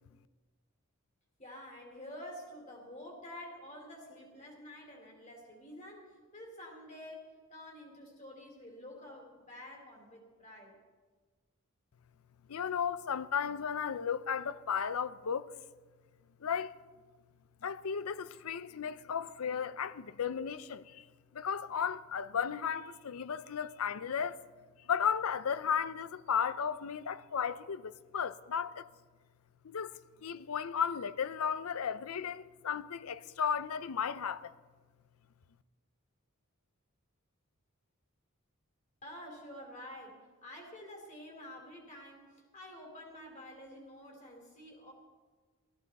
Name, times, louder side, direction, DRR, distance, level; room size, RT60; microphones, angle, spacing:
voice 1, 1.4-10.8 39.0-44.9, left 1 dB, 35° left, 3.0 m, -49 dB
voice 2, 12.5-15.5 16.4-16.7 17.6-21.1 21.3-24.4 24.8-28.9 29.6-34.5, left 7 dB, 80° left, 0.5 m, -34 dB
17.0 x 14.0 x 4.1 m
head